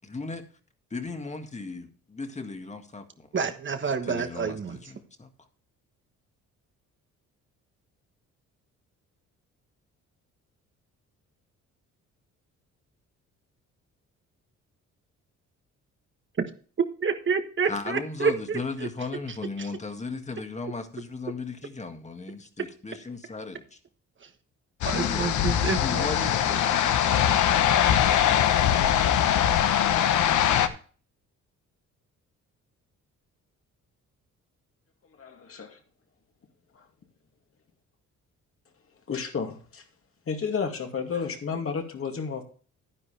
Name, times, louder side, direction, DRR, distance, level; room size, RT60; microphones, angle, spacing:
voice 1, 0.0-0.4 0.9-3.3 4.0-5.3 17.7-23.6 24.9-27.9, left 3 dB, 25° left, 1.9 m, -37 dB
voice 2, 3.3-4.8 17.0-18.9 19.6-19.7 24.2-24.3 24.8-26.9, right 5 dB, 40° right, 1.3 m, -29 dB
sound 1, 24.8-30.7, left 10 dB, 75° left, 1.1 m, -22 dB
voice 3, 35.2-35.8 36.7-36.8 39.1-39.8 40.3-42.4, left 5 dB, 45° left, 2.4 m, -32 dB
11.0 x 10.0 x 3.4 m
cardioid pair, 90°, 30 cm